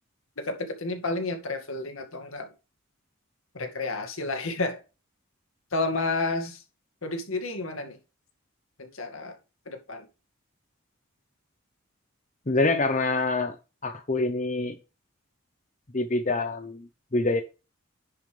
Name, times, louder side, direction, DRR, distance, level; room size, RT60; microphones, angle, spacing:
voice 1, 0.4-2.5 3.5-4.8 5.7-6.6 7.0-8.0 8.8-9.4 9.7-10.1, left 2 dB, 80° left, 2.2 m, -31 dB
voice 2, 12.5-13.6 13.8-14.8 15.9-17.4, left 2 dB, 35° left, 0.8 m, -26 dB
10.5 x 7.1 x 3.4 m
head